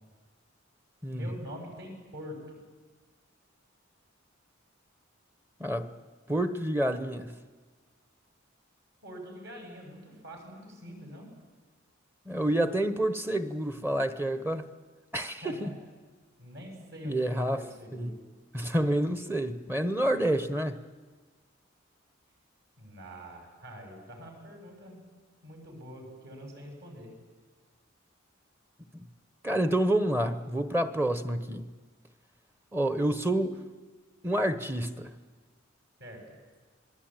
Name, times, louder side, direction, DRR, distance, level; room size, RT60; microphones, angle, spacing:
voice 1, 1.1-2.6 9.0-11.3 15.4-15.8 16.4-18.2 22.8-25.0 25.4-27.1 36.0-36.4, equal, 60° right, 2 dB, 7.3 m, -45 dB
voice 2, 5.6-5.9 6.3-7.3 12.3-14.6 15.1-15.7 17.0-17.7 17.9-18.2 18.5-20.8 29.4-31.7 32.7-33.6 34.2-35.1, right 1 dB, 10° right, 11 dB, 1.0 m, -28 dB
26.5 x 21.5 x 9.0 m, 1.4 s
head